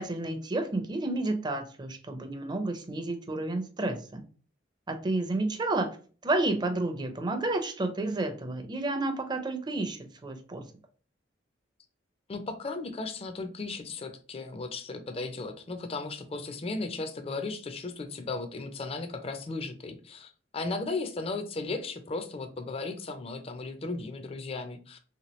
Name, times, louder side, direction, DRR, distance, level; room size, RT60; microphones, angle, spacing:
voice 1, 0.0-4.2 4.9-6.0 6.2-10.7, right 2 dB, 25° right, 6 dB, 0.5 m, -31 dB
voice 2, 12.3-25.0, left 3 dB, 30° left, 8 dB, 0.4 m, -36 dB
3.2 x 2.9 x 3.0 m, 0.39 s
head